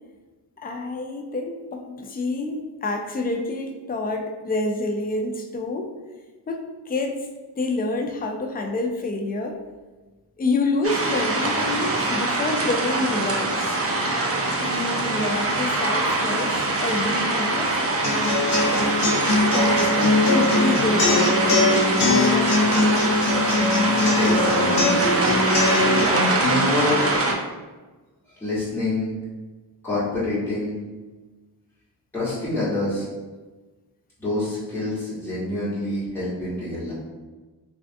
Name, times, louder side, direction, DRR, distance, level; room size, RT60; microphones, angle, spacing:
voice 1, 0.6-5.9 6.5-7.2 7.6-9.6 10.4-13.8 14.6-17.8 18.7-19.0 19.4-23.0, left 2 dB, 25° left, 3 dB, 0.3 m, -28 dB
sound 1, 10.8-27.3, right 2 dB, 35° right, 0.5 m, -23 dB
sound 2, 18.0-26.0, left 2 dB, 70° left, 0.7 m, -21 dB
voice 2, 24.1-25.0 26.1-27.3 28.3-29.1 29.8-30.8 32.1-33.0 34.2-36.9, left 2 dB, 5° left, -12 dB, 1.2 m, -26 dB
3.3 x 2.4 x 2.5 m, 1.2 s
wide cardioid pair, 65°, 42 cm